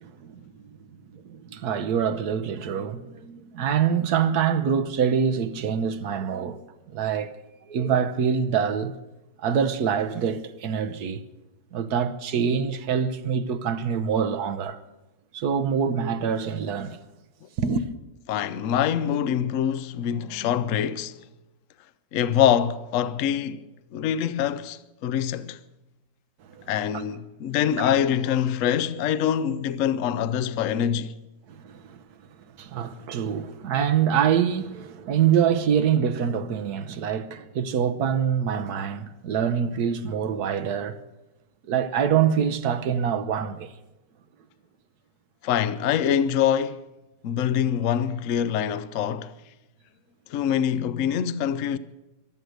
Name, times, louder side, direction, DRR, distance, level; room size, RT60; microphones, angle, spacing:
voice 1, 0.0-0.4 1.1-6.6 6.9-7.3 7.6-8.9 9.4-11.2 11.7-14.8 15.3-17.0 17.6-17.9 26.5-26.6 31.5-32.0 32.6-41.0 41.6-43.7, right 7 dB, 65° right, 1.3 m, -25 dB
voice 2, 18.3-21.2 22.1-23.6 23.9-25.6 26.7-31.2 45.4-46.8 47.2-49.3 50.3-51.8, left 9 dB, 60° left, 0.8 m, -24 dB
14.5 x 11.5 x 7.9 m
omnidirectional pair, 1.9 m